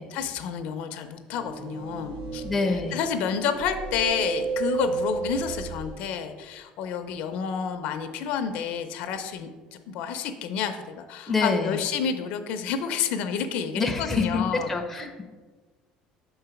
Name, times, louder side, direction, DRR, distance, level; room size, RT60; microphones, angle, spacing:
voice 1, 0.1-2.4 2.9-9.5 9.9-14.7, left 7 dB, 65° left, 8 dB, 0.5 m, -29 dB
sound 1, 1.3-6.0, right 4 dB, 60° right, 0.6 m, -32 dB
voice 2, 2.4-3.0 11.3-11.8 13.7-15.2, left 3 dB, 10° left, 3 dB, 0.5 m, -26 dB
5.4 x 3.9 x 5.7 m, 1.4 s
cardioid pair, 165°, 2 cm